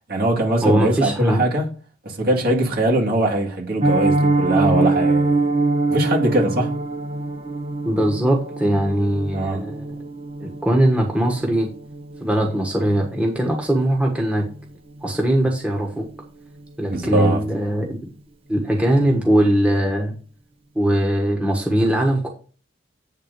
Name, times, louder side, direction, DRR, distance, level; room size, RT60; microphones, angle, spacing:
voice 1, 0.1-1.7 2.0-5.4 5.9-6.8 9.3-9.6 16.9-17.4, right 1 dB, 50° right, 1.9 m, -21 dB
voice 2, 0.6-1.4 7.8-9.9 10.4-11.7 12.2-14.4 15.0-16.0 16.8-18.1 18.5-20.1 20.7-22.3, right 1 dB, 5° right, 1.3 m, -20 dB
Piano, 3.8-14.7 15.0-15.2 15.5-15.7 16.0-16.3 16.6-16.7, right 2 dB, 30° right, 0.6 m, -24 dB
8.7 x 3.8 x 6.5 m
head